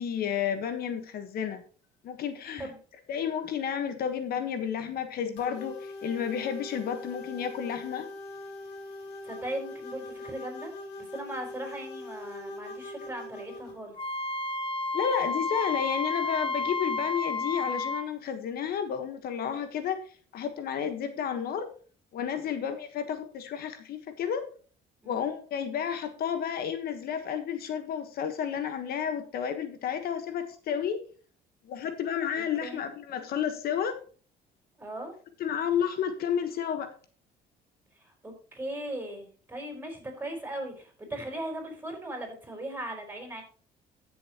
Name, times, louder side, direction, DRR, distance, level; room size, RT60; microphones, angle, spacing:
voice 1, 0.0-1.6 2.0-2.7 3.1-8.1 14.9-20.0 20.3-21.7 22.1-24.4 25.1-31.0 31.7-34.0 35.4-36.9, left 8 dB, 65° left, 8 dB, 1.4 m, -31 dB
sound 1, 5.4-13.8, left 2 dB, 80° left, 3.2 m, -42 dB
voice 2, 9.2-14.0 22.4-22.6 25.0-25.2 32.6-32.8 34.8-35.1 37.9-43.4, right 1 dB, 10° right, 2 dB, 4.8 m, -38 dB
Wind instrument woodwind instrument, 14.0-18.1, left 3 dB, 30° left, 0.9 m, -31 dB
15.0 x 7.1 x 3.0 m, 0.41 s
cardioid pair, 110°, 17 cm